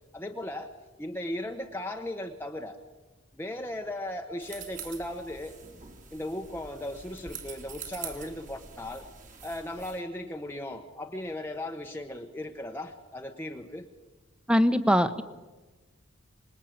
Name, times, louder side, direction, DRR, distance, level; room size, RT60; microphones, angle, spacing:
voice 1, 0.1-2.8 3.3-5.6 6.1-9.1 9.4-13.9, left 1 dB, 10° left, 3 dB, 1.2 m, -37 dB
sound 1, 4.4-10.0, right 6 dB, 40° right, 3.0 m, -45 dB
voice 2, 14.5-15.2, equal, 5° right, 12 dB, 1.1 m, -22 dB
26.5 x 21.0 x 8.7 m, 1.2 s
head